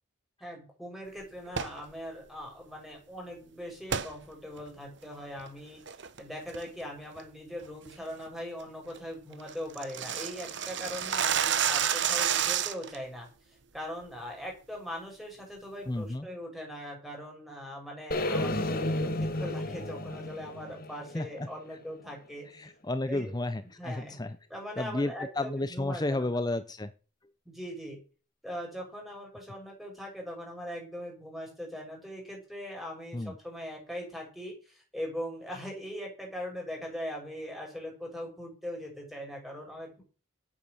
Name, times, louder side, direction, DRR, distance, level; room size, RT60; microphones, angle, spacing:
voice 1, 0.4-5.8 6.2-13.3 13.7-22.5 23.1-23.3 23.8-24.1 24.5-26.3 27.5-28.0 28.4-40.0, equal, ahead, 0 dB, 5.8 m, -40 dB
sound 1, 1.5-1.8 3.9-4.1 4.6-4.7 5.2-5.5 5.9-6.2 6.5-6.8 7.2-7.3 7.7-7.9 8.3-8.4 8.7-8.8 9.0-9.1 9.3-13.0, right 8 dB, 55° right, 1.0 m, -29 dB
voice 2, 15.9-16.3 21.1-21.5 22.4-24.4 24.8-26.9 33.1-33.3, left 2 dB, 20° left, 12 dB, 0.6 m, -32 dB
sound 2, 18.1-22.2, left 1 dB, 45° left, 1.5 m, -32 dB
11.0 x 8.9 x 6.4 m, 0.36 s
head